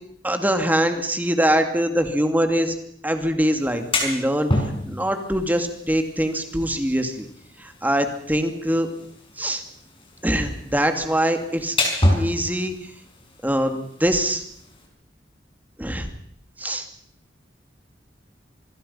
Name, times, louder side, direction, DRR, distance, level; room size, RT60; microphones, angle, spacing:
voice 1, 0.2-2.7 3.0-4.5 4.9-7.3 7.6-8.9 9.4-9.6 10.2-11.8 12.1-12.7 13.4-14.4 15.8-16.1 16.6-16.8, equal, 10° right, 7 dB, 2.4 m, -23 dB
sound 1, 3.6-14.9, left 1 dB, 30° left, 5.6 m, -30 dB
26.0 x 21.5 x 5.7 m, 0.67 s
head